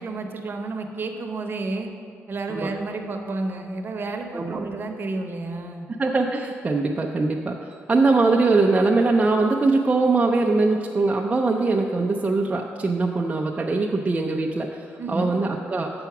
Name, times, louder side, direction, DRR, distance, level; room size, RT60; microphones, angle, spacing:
voice 1, 0.0-1.9 2.3-5.9 15.0-15.4, right 3 dB, 45° right, 4 dB, 0.9 m, -30 dB
voice 2, 4.3-4.7 6.0-15.9, right 3 dB, 25° right, 1 dB, 0.5 m, -22 dB
6.9 x 5.8 x 5.9 m, 2.3 s
cardioid pair, 90°, 5 cm